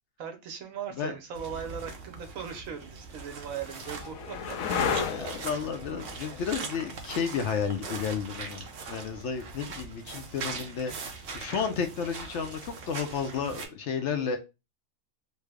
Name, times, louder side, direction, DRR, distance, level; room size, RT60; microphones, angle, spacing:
voice 1, 0.2-4.8, right 7 dB, 75° right, 1.1 m, -39 dB
sound 1, 1.3-13.7, right 4 dB, 55° right, 0.7 m, -41 dB
sound 2, 1.5-1.6 2.5-10.1 12.4-13.0, left 6 dB, 85° left, 1.0 m, -36 dB
voice 2, 5.1-14.4, left 6 dB, 65° left, 0.8 m, -32 dB
3.2 x 2.0 x 3.3 m
omnidirectional pair, 1.4 m